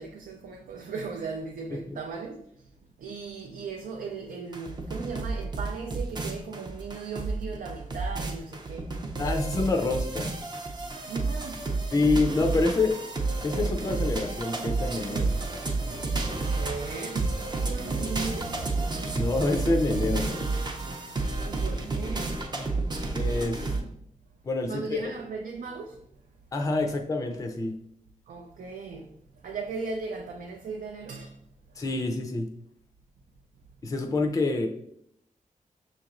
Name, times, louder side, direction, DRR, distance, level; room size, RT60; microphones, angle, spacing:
voice 1, 0.0-2.4 3.0-9.1 11.1-11.6 16.5-17.2 17.5-18.6 21.4-22.4 23.6-23.9 24.7-26.0 28.3-29.1 29.4-31.4, right 4 dB, 90° right, 0.4 m, -37 dB
sound 1, 4.5-23.8, right 3 dB, 30° right, 0.5 m, -31 dB
voice 2, 9.2-10.3 11.9-13.0 13.4-15.3 19.1-20.3 23.1-23.7 24.4-25.1 26.5-27.7 31.8-32.5 33.8-34.7, left 3 dB, 25° left, 0.4 m, -27 dB
6.2 x 2.9 x 2.4 m
wide cardioid pair, 160°, 14 cm